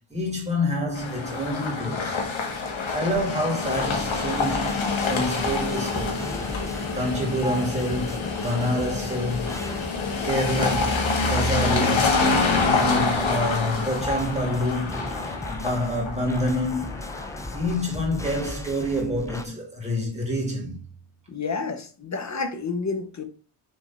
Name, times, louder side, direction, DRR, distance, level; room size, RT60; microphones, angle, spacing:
voice 1, 0.1-2.2 2.9-4.8 5.1-6.3 6.9-9.6 10.2-12.3 12.7-15.0 15.5-17.1 17.5-20.8, left 1 dB, 15° right, 2.4 m, -27 dB
sound 1, 0.9-17.9, left 3 dB, 70° left, 1.5 m, -27 dB
sound 2, 3.7-19.4, left 2 dB, 5° left, 0.5 m, -38 dB
sound 3, 5.5-15.2, equal, 50° left, 1.5 m, -40 dB
voice 2, 21.3-23.2, left 4 dB, 35° left, 0.9 m, -30 dB
6.3 x 3.5 x 4.2 m
wide cardioid pair, 120°, 49 cm